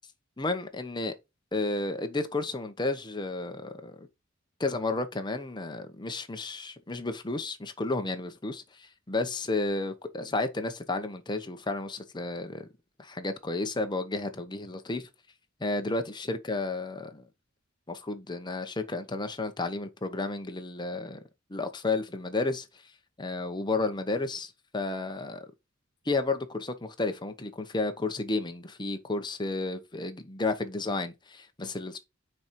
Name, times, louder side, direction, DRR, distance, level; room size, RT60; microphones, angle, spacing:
voice 1, 0.4-1.1 1.5-4.1 4.6-12.7 13.0-15.1 15.6-17.2 17.9-21.2 21.5-22.7 23.2-25.5 26.0-32.0, left 3 dB, 20° left, 0.9 m, -32 dB
6.3 x 4.5 x 4.5 m
head